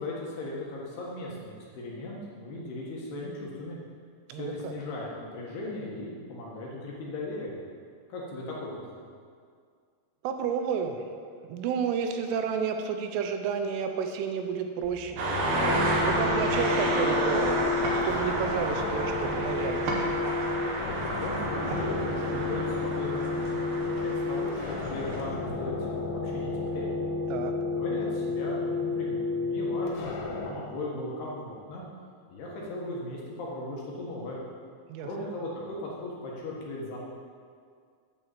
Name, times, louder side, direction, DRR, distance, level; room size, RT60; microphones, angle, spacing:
voice 1, 0.0-3.8 4.3-7.5 8.1-8.7 21.0-27.0 27.7-31.8 32.3-34.4 35.0-37.0, left 2 dB, 65° left, -4 dB, 3.1 m, -37 dB
voice 2, 4.3-4.7 10.2-11.0 11.4-15.2 16.0-17.6 17.9-20.1 27.3-27.5 34.9-35.3, right 6 dB, 85° right, 6 dB, 3.3 m, -31 dB
sound 1, 14.8-30.5, left 4 dB, 90° left, 3.9 m, -31 dB
sound 2, 15.2-25.2, right 1 dB, 65° right, 2.7 m, -30 dB
10.0 x 6.0 x 7.4 m, 2.1 s
omnidirectional pair, 5.6 m